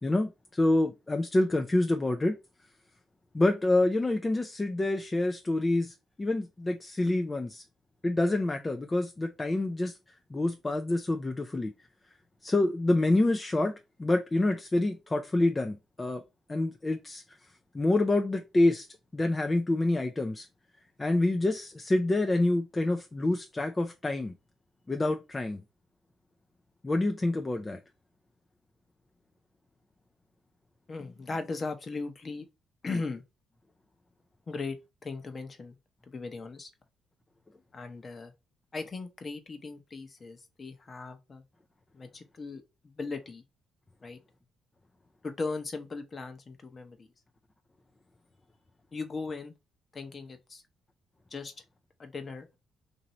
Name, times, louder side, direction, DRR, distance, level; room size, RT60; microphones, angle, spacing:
voice 1, 0.0-2.4 3.3-7.6 8.0-11.7 12.4-16.2 16.5-17.4 17.7-18.9 19.1-20.5 21.0-24.3 24.9-25.6 26.8-27.8, left 2 dB, 20° left, 0.4 m, -27 dB
voice 2, 30.9-32.5 32.8-33.2 34.5-35.8 36.1-36.7 37.7-38.3 38.7-41.4 41.9-43.4 44.0-44.2 45.2-47.1 48.9-49.5 49.9-50.6 51.3-51.5 52.0-52.5, left 3 dB, 35° left, 0.9 m, -38 dB
2.9 x 2.7 x 4.2 m
cardioid pair, 90°, 0 cm